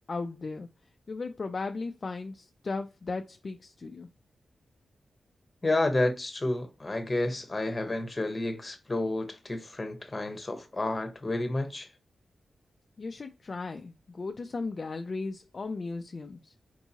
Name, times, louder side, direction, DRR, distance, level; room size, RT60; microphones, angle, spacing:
voice 1, 0.1-0.7 1.1-4.1 13.0-16.5, left 3 dB, 40° left, 0.3 m, -36 dB
voice 2, 5.6-11.9, left 2 dB, 25° left, 0.9 m, -30 dB
4.4 x 2.8 x 2.8 m
wide cardioid pair, 120°, 0 cm